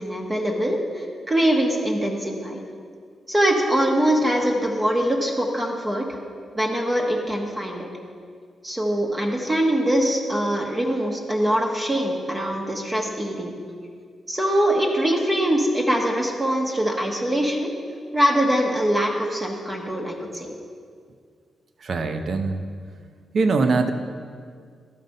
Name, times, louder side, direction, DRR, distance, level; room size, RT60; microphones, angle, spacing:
voice 1, 0.0-2.6 3.3-6.2 6.5-7.9 8.6-13.5 14.3-17.7 18.1-20.5, equal, 20° right, 0 dB, 1.2 m, -23 dB
voice 2, 21.8-22.6 23.3-23.9, right 4 dB, 60° right, 8 dB, 0.7 m, -22 dB
12.5 x 5.3 x 5.3 m, 2.1 s
cardioid pair, 80°, 0 cm